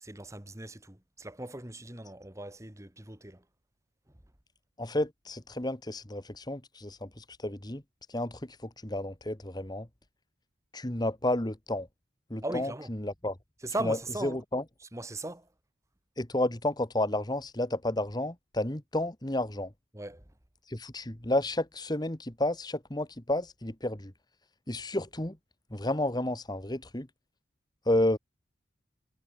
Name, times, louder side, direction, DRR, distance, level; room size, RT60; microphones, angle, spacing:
voice 1, 0.0-3.4 12.4-12.9 13.6-14.4 14.9-15.5 19.9-20.2, right 2 dB, 15° right, 2.0 m, -38 dB
voice 2, 4.8-7.8 8.1-9.9 10.7-11.9 12.3-13.3 13.8-14.6 16.2-19.7 20.7-24.1 24.7-25.4 25.7-27.1 27.9-28.2, left 1 dB, 20° left, 1.7 m, -31 dB
head